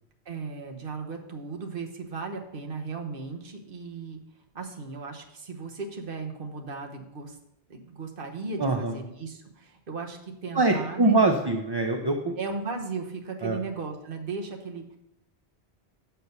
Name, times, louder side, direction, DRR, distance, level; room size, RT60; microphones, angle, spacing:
voice 1, 0.2-4.2 4.5-7.4 7.7-11.2 12.4-15.0, right 4 dB, 55° right, 3 dB, 1.2 m, -36 dB
voice 2, 8.6-9.0 10.5-12.4 13.4-13.6, right 2 dB, 35° right, 4 dB, 0.4 m, -23 dB
6.8 x 4.5 x 6.6 m, 0.81 s
omnidirectional pair, 1.1 m